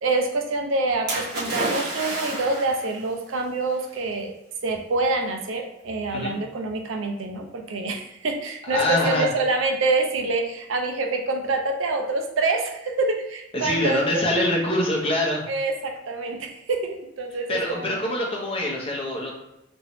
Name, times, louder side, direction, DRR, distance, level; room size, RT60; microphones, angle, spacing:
voice 1, 0.0-4.3 4.6-14.1 15.5-18.0, right 3 dB, 85° right, 4 dB, 0.5 m, -26 dB
Splash splatter, 1.1-2.9 3.8-3.9, right 1 dB, 55° right, 1.1 m, -29 dB
voice 2, 8.6-9.3 13.5-15.4 17.5-19.3, left 1 dB, 30° left, -2 dB, 0.7 m, -24 dB
3.0 x 2.6 x 3.0 m, 0.87 s
head